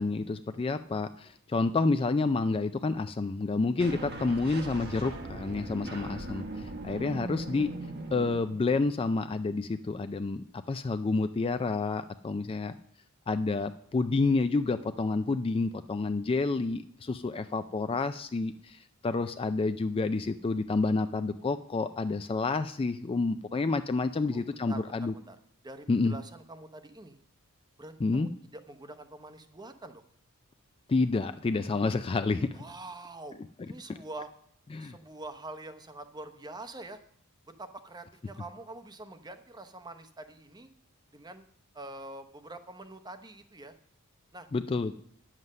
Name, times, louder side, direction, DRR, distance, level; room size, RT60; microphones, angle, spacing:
voice 1, 0.0-7.7 8.1-12.8 13.3-25.1 25.9-26.2 28.0-28.3 30.9-32.6 34.7-34.9 44.5-44.9, left 3 dB, 25° left, 10 dB, 0.3 m, -29 dB
sound 1, 3.8-8.9, right 2 dB, 45° right, 1.1 m, -40 dB
voice 2, 24.2-25.4 25.6-27.2 27.8-30.0 32.5-33.4 33.7-34.3 34.8-37.0 37.6-40.7 41.1-41.5 41.7-43.7 44.3-44.5, right 2 dB, 20° right, 9 dB, 0.8 m, -45 dB
9.5 x 7.5 x 6.5 m, 0.66 s
head